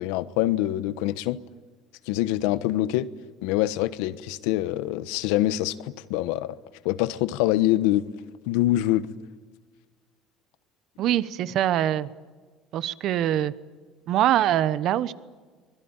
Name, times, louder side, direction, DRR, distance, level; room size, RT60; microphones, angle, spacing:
voice 1, 0.0-1.4 2.1-3.1 3.4-6.6 6.8-8.1 8.5-9.1, left 15 dB, 85° left, 1.1 m, -25 dB
voice 2, 11.0-12.1 12.7-13.5 14.1-15.1, right 12 dB, 60° right, 1.0 m, -23 dB
25.0 x 21.0 x 8.9 m
cardioid pair, 120°, 0 cm